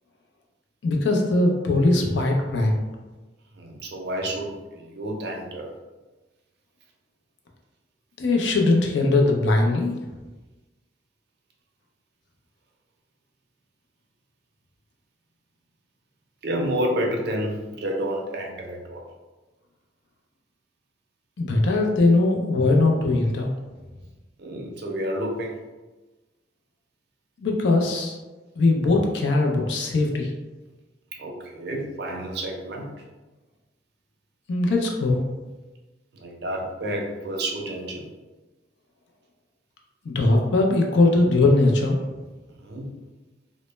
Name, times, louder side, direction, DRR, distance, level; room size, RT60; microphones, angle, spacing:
voice 1, 0.8-2.8 8.2-9.9 21.4-23.5 27.4-28.2 28.6-30.3 34.5-35.2 40.1-42.0, left 2 dB, 70° left, 1 dB, 0.4 m, -20 dB
voice 2, 3.5-5.7 8.4-8.5 16.4-19.0 24.4-25.6 31.1-32.9 36.1-38.1 42.5-42.9, right 1 dB, 60° right, 1 dB, 0.4 m, -30 dB
2.0 x 2.0 x 3.1 m, 1.2 s
head